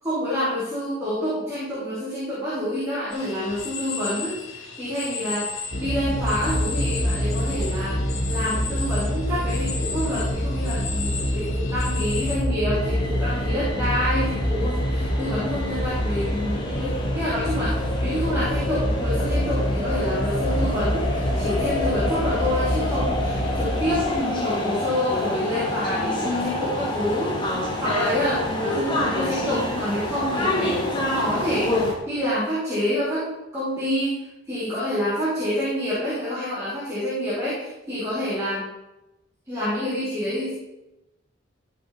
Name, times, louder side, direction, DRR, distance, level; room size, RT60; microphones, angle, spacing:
voice 1, 0.0-8.0 8.3-38.7 39.5-40.5, equal, 15° right, -10 dB, 3.5 m, -28 dB
sound 1, 3.1-12.4, left 5 dB, 75° left, 1.9 m, -35 dB
sound 2, 5.7-24.1, equal, 45° left, 0.9 m, -26 dB
sound 3, 12.7-31.9, left 1 dB, 20° left, 1.7 m, -28 dB
14.0 x 6.0 x 4.3 m, 0.92 s
head